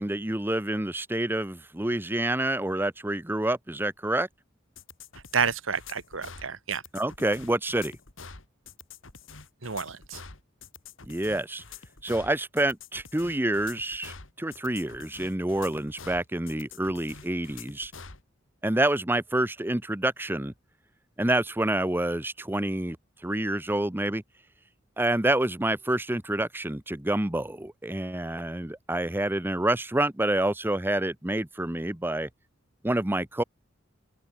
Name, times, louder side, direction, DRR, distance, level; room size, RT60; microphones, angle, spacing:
voice 1, 0.0-4.3 6.9-7.9 11.0-11.6 12.0-17.9 18.6-20.5 21.2-23.0 23.2-24.2 25.0-32.3 32.8-33.4, right 1 dB, 10° right, 0.8 m, -28 dB
sound 1, 4.8-18.2, left 5 dB, 75° left, 2.9 m, -46 dB
voice 2, 5.3-6.8 9.6-10.2, right 6 dB, 80° right, 1.6 m, -29 dB
open air
head